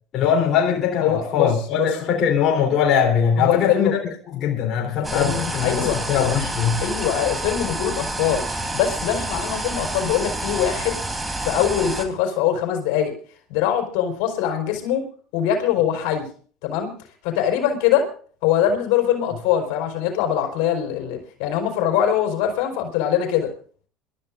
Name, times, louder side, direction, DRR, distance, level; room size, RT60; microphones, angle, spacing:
voice 1, 0.1-4.0 4.3-6.8, left 7 dB, 50° left, 3.3 m, -21 dB
voice 2, 1.0-1.9 3.4-3.9 5.0-6.0 6.8-11.0 11.4-13.1 13.5-15.1 15.3-16.3 16.6-16.9 17.2-18.1 18.4-23.5, left 10 dB, 80° left, 4.2 m, -22 dB
sound 1, 5.0-12.1, right 2 dB, 15° right, 3.3 m, -28 dB
27.5 x 13.5 x 2.6 m
supercardioid pair, 100°, 0 cm